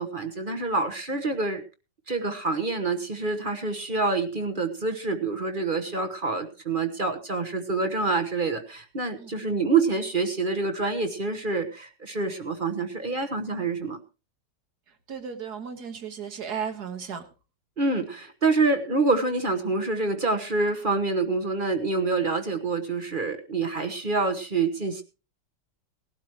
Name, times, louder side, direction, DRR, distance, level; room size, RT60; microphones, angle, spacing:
voice 1, 0.0-1.6 2.1-14.0 17.8-25.0, right 3 dB, 35° right, 7 dB, 1.2 m, -27 dB
voice 2, 15.1-17.2, right 7 dB, 65° right, 8 dB, 2.0 m, -34 dB
18.5 x 12.5 x 3.0 m, 0.32 s
omnidirectional pair, 1.9 m